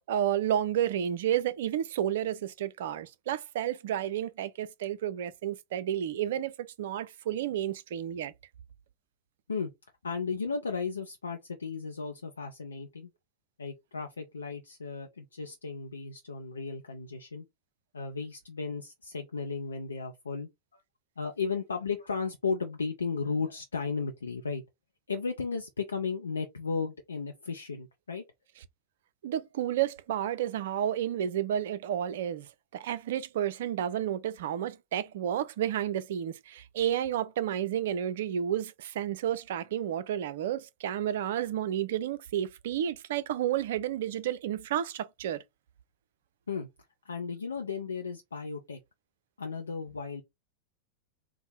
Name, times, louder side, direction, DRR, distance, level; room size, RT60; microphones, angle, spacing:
voice 1, 0.1-8.3 29.2-45.4, right 10 dB, 55° right, 0.4 m, -31 dB
voice 2, 10.0-13.1 13.6-17.4 17.9-20.8 21.2-24.6 25.1-28.2 46.5-46.7 47.0-48.8 49.4-50.2, left 5 dB, 75° left, 0.5 m, -35 dB
3.5 x 2.0 x 4.0 m
figure-of-eight pair, 90°, 0 cm